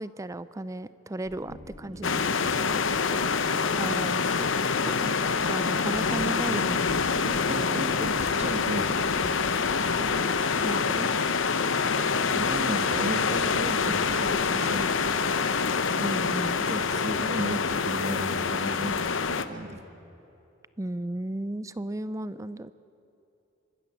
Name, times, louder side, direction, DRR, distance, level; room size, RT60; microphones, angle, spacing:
voice 1, 0.0-2.2 3.8-4.5 4.8-5.1 5.4-6.8 10.6-11.1 16.0-16.6 20.8-22.7, right 1 dB, 15° right, 15 dB, 0.4 m, -34 dB
sound 1, 1.2-4.8, left 1 dB, 10° left, 5.4 m, -51 dB
voice 2, 1.9-2.9 5.0-5.3 6.1-6.6 6.9-9.1 12.3-14.9 16.6-19.8, right 1 dB, 35° right, 8 dB, 1.4 m, -35 dB
sound 2, 2.0-19.4, left 5 dB, 70° left, 0.8 m, -26 dB
24.5 x 13.0 x 8.6 m, 2.9 s
head